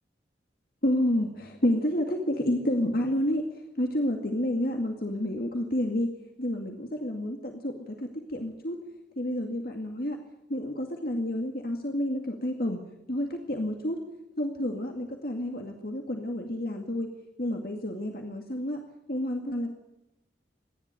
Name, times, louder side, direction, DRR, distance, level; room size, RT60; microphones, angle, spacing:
voice 1, 0.8-3.5 3.8-6.1 6.4-8.8 9.2-10.2 10.5-14.0 14.4-17.1 17.4-18.8 19.1-19.7, left 1 dB, 55° left, 3 dB, 2.2 m, -29 dB
27.5 x 11.5 x 9.2 m, 0.90 s
head